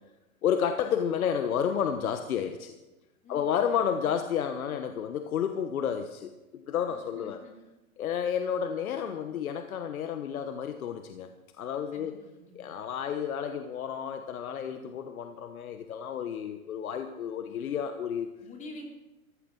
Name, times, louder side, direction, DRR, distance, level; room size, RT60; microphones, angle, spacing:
voice 1, 0.4-2.7 3.3-7.4 8.0-11.3 11.6-12.1 12.5-18.3, left 8 dB, 80° left, 8 dB, 1.3 m, -31 dB
voice 2, 3.2-4.1 6.9-7.5 11.9-12.7 18.4-18.8, left 2 dB, 20° left, 2 dB, 2.9 m, -48 dB
15.0 x 12.5 x 6.1 m, 1.1 s
hypercardioid pair, 140°, 42 cm